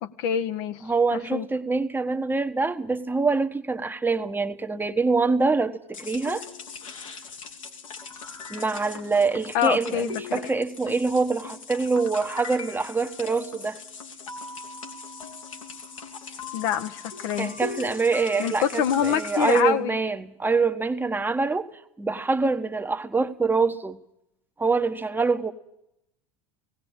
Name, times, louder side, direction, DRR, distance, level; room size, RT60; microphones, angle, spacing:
voice 1, 0.0-0.8 1.1-1.4 9.5-10.4 16.5-17.5 18.4-20.0, left 9 dB, 55° left, 8 dB, 1.1 m, -26 dB
voice 2, 0.8-6.4 8.5-13.8 17.4-21.7 22.0-24.0 24.6-25.5, right 4 dB, 10° right, 7 dB, 1.2 m, -25 dB
sound 1, 5.9-19.6, left 4 dB, 75° left, 2.3 m, -40 dB
18.0 x 18.0 x 8.9 m, 0.80 s
figure-of-eight pair, 70°, 17 cm